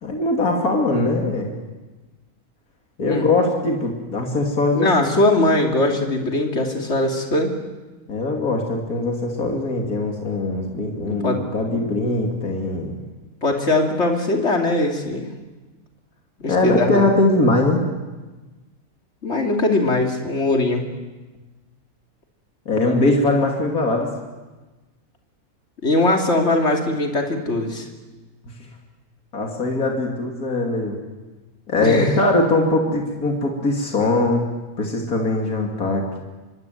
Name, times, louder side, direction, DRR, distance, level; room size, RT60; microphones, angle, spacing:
voice 1, 0.0-1.5 3.0-5.1 5.4-5.9 8.1-13.0 16.4-17.8 22.6-24.1 28.4-28.7 29.3-31.0 31.7-34.5 34.8-36.2, left 2 dB, 80° left, 1 dB, 3.3 m, -21 dB
voice 2, 4.8-7.5 11.1-11.4 13.4-15.3 16.4-17.0 19.2-20.8 25.8-27.9 31.8-32.1, left 2 dB, 50° left, 2 dB, 3.2 m, -20 dB
25.5 x 23.5 x 9.4 m, 1.2 s
omnidirectional pair, 1.5 m